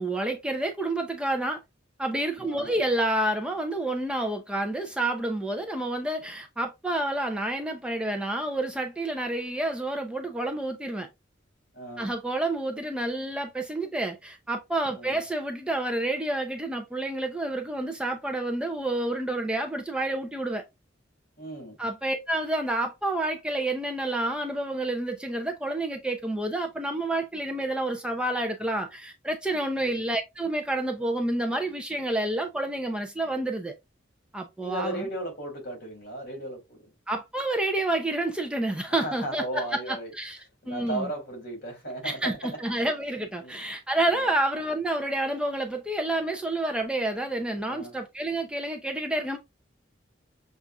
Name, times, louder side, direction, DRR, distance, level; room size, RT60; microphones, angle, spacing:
voice 1, 0.0-1.6 2.0-11.1 12.0-20.6 21.8-33.7 34.3-35.0 37.1-40.4 40.7-41.1 42.0-49.4, right 1 dB, 5° right, 0.4 m, -29 dB
voice 2, 2.5-2.8 11.7-12.1 14.9-15.2 21.4-21.8 29.8-30.0 34.6-36.9 38.9-40.1 40.6-42.6 43.4-43.6 44.1-44.3 47.6-47.9, right 1 dB, 55° left, 2.1 m, -36 dB
6.6 x 2.4 x 2.3 m
head